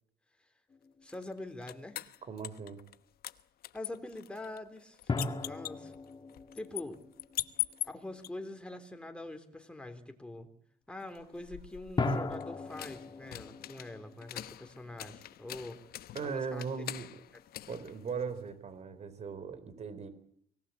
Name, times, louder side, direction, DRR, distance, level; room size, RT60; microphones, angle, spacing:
sound 1, 0.7-1.4 5.1-7.9 12.0-15.2, left 3 dB, 25° left, 2.5 m, -38 dB
voice 1, 1.0-2.0 3.7-5.9 6.5-7.0 7.9-10.5 10.9-15.8 16.2-16.6 16.9-17.0, left 2 dB, 5° left, 6 dB, 3.6 m, -44 dB
sound 2, 1.1-3.0 3.2-8.3 11.1-18.6, left 14 dB, 65° left, 1.1 m, -43 dB
voice 2, 2.2-2.8 16.1-17.1 17.7-20.1, right 5 dB, 40° right, 13 dB, 4.1 m, -38 dB
24.0 x 19.0 x 8.6 m, 0.67 s
cardioid pair, 110°, 17 cm